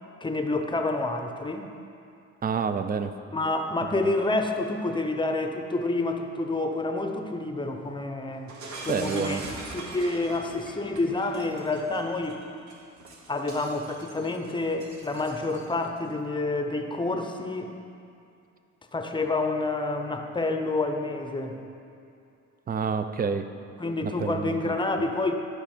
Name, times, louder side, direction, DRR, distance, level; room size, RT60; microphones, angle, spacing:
voice 1, 0.2-1.7 3.3-8.5 8.8-9.4 9.7-12.4 13.3-17.7 18.9-21.6 23.8-25.4, left 2 dB, 15° left, 5 dB, 0.7 m, -28 dB
voice 2, 2.4-3.1 8.9-9.4 22.7-23.5 24.2-24.6, right 6 dB, 30° right, 10 dB, 0.5 m, -28 dB
Shatter, 8.5-15.9, right 2 dB, 70° right, 1.3 m, -42 dB
11.5 x 5.2 x 4.4 m, 2.6 s
cardioid pair, 90°, 30 cm